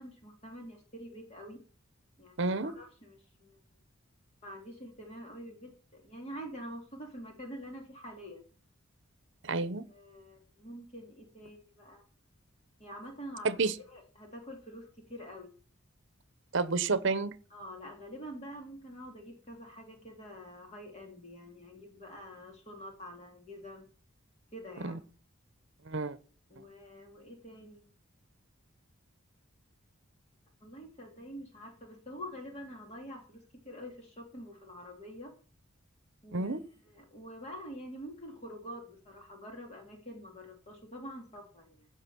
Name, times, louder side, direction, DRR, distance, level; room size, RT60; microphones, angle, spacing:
voice 1, 0.0-1.6 2.2-3.6 4.4-8.4 9.6-12.0 12.8-15.5 17.5-23.9 24.5-25.0 26.5-27.9 30.6-35.3 36.2-36.6 36.9-41.9, equal, 30° left, 2.9 m, -46 dB
voice 2, 2.4-2.7 9.4-9.8 13.4-13.8 16.5-17.3 24.8-25.0 25.9-26.2 36.3-36.6, right 3 dB, 60° right, 0.9 m, -30 dB
15.5 x 6.1 x 6.1 m
head